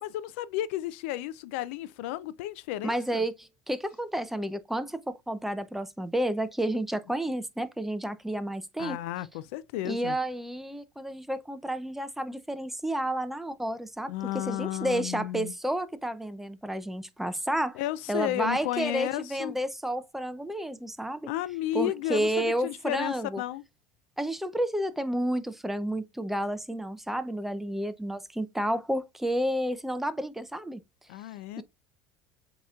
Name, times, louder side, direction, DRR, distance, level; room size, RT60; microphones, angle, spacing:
voice 1, 0.0-3.2 8.8-10.2 14.1-15.5 17.7-19.5 21.3-23.6 31.1-31.6, left 14 dB, 80° left, 0.4 m, -33 dB
voice 2, 2.8-9.0 9.8-17.8 18.1-21.3 21.7-23.4 24.2-30.8 31.6-31.7, right 1 dB, 5° right, 0.5 m, -31 dB
7.7 x 2.9 x 2.3 m
supercardioid pair, 110°, 7 cm